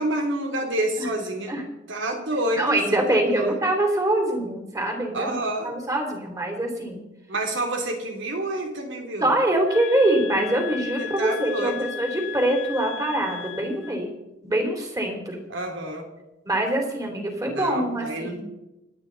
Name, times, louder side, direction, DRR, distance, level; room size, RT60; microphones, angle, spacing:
voice 1, 0.0-1.5 1.9-3.6 5.1-5.7 7.3-9.3 11.0-11.9 15.5-16.0 17.5-18.4, right 1 dB, 80° right, 2 dB, 3.2 m, -28 dB
voice 2, 2.5-5.4 5.6-7.0 9.2-14.1 14.4-15.4 16.4-18.4, right 1 dB, 20° right, 2 dB, 3.3 m, -24 dB
sound 1, 9.7-14.0, left 10 dB, 80° left, 1.6 m, -36 dB
28.5 x 9.6 x 4.0 m, 0.98 s
head